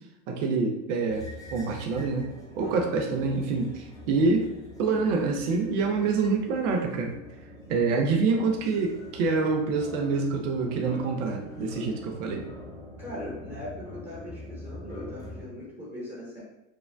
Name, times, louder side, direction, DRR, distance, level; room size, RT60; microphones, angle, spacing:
voice 1, 0.3-2.3 2.6-4.5 4.8-7.1 7.7-12.4, right 4 dB, 65° right, 2 dB, 0.7 m, -26 dB
sound 1, 1.1-15.5, left 1 dB, 10° left, 0.9 m, -44 dB
voice 2, 2.6-2.9 13.0-16.4, left 1 dB, 15° right, -5 dB, 1.0 m, -40 dB
4.9 x 2.2 x 2.4 m, 0.88 s
hypercardioid pair, 110°, 40 cm